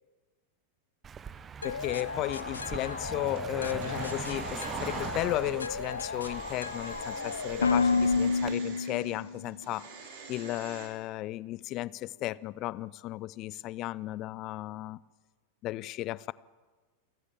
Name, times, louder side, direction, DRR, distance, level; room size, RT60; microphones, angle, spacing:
Car passing by, 1.0-8.5, right 7 dB, 20° right, 0.9 m, -41 dB
sound 1, 1.6-9.4, left 4 dB, 75° left, 1.0 m, -32 dB
voice 1, 1.6-9.9 10.3-15.0 15.6-16.3, left 16 dB, 35° left, 0.6 m, -35 dB
sound 2, 3.2-10.9, right 6 dB, 55° right, 5.0 m, -47 dB
28.5 x 14.5 x 7.4 m
figure-of-eight pair, 90°, 0 cm